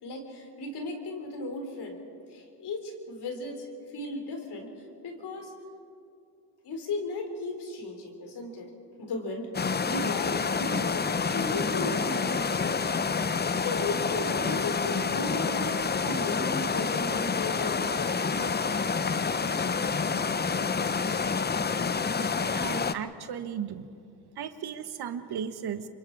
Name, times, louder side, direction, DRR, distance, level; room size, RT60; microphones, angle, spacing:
voice 1, 0.0-2.0 2.3-4.7 5.0-5.5 6.6-8.7 9.0-9.5 9.8-13.0 13.5-15.7 16.0-18.5, left 2 dB, 60° left, 4 dB, 4.2 m, -36 dB
sound 1, 9.5-22.9, left 5 dB, 25° left, 0.8 m, -28 dB
voice 2, 22.5-23.9 24.4-25.9, right 8 dB, 60° right, 10 dB, 1.4 m, -35 dB
27.0 x 24.0 x 4.8 m, 2.5 s
cardioid pair, 85°, 43 cm